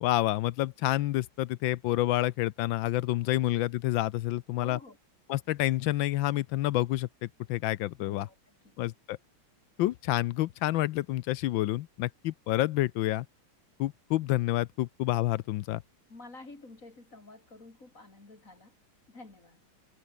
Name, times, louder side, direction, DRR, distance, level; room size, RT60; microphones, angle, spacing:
voice 1, 0.0-4.8 5.3-8.3 8.8-9.2 9.8-13.3 13.8-15.8, left 15 dB, 75° left, 1.3 m, -28 dB
voice 2, 4.6-5.0 8.0-8.8 16.1-18.7 19.1-19.6, left 2 dB, 40° left, 4.2 m, -50 dB
omnidirectional pair, 2.3 m